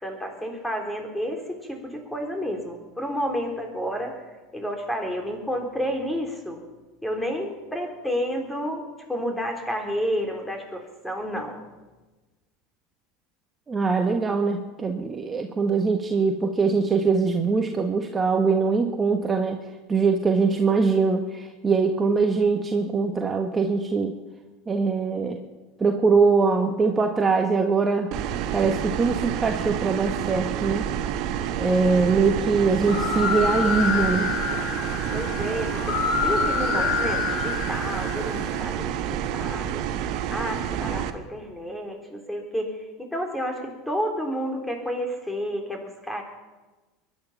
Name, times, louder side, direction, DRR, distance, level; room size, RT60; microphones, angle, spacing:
voice 1, 0.0-4.2 4.5-6.6 7.0-11.6 31.9-32.1 35.1-39.8 40.3-46.2, equal, 5° left, 3 dB, 3.7 m, -30 dB
voice 2, 13.7-19.6 19.9-24.1 24.7-25.4 25.8-28.1 28.5-30.8 31.6-34.3, right 4 dB, 20° right, 4 dB, 1.4 m, -22 dB
sound 1, 28.1-41.1, right 10 dB, 55° right, 1.1 m, -29 dB
sound 2, 32.7-38.6, left 5 dB, 55° left, 3.8 m, -27 dB
22.5 x 10.5 x 5.7 m, 1.2 s
hypercardioid pair, 80°, 0 cm